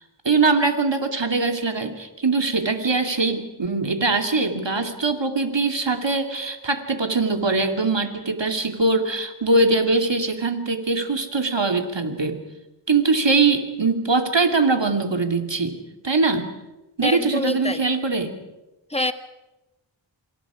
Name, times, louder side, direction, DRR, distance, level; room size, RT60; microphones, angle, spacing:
voice 1, 0.2-12.4 12.9-15.8 16.0-16.5 17.0-18.4, right 3 dB, 60° right, 5 dB, 2.7 m, -22 dB
voice 2, 17.0-17.8 18.9-19.1, left 2 dB, 10° left, 9 dB, 1.6 m, -25 dB
27.0 x 26.0 x 5.0 m, 1.0 s
wide cardioid pair, 45°, 49 cm